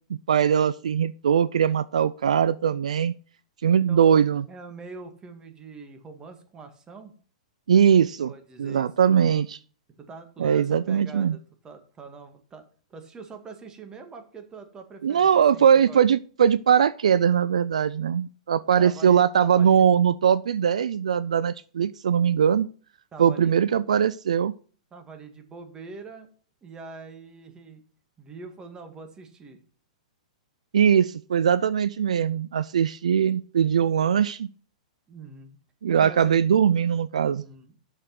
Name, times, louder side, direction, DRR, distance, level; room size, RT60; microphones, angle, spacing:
voice 1, 0.1-3.1 3.6-4.5 7.7-8.3 8.6-9.6 10.4-11.4 15.0-22.7 23.2-24.5 30.7-34.5 35.8-37.4, right 8 dB, 75° right, 17 dB, 0.4 m, -21 dB
voice 2, 3.9-4.2 4.5-7.1 8.2-9.4 10.0-12.6 12.9-16.0 18.8-19.9 23.1-23.8 24.9-26.3 26.6-27.8 28.2-29.6 35.1-35.6 35.9-36.5 37.4-37.7, right 4 dB, 20° right, 5 dB, 1.9 m, -44 dB
7.8 x 6.5 x 5.9 m, 0.42 s
hypercardioid pair, 110°, 4 cm